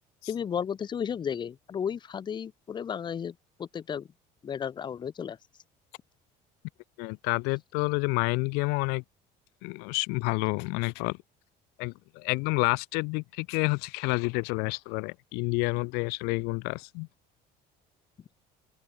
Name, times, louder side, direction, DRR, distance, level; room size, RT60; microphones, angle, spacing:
voice 1, 0.3-4.1 4.4-5.4, left 8 dB, 30° left, 1.1 m, -33 dB
voice 2, 7.0-9.0 9.6-11.2 11.8-17.1, left 31 dB, 85° left, 0.9 m, -29 dB
open air
cardioid pair, 140°, 16 cm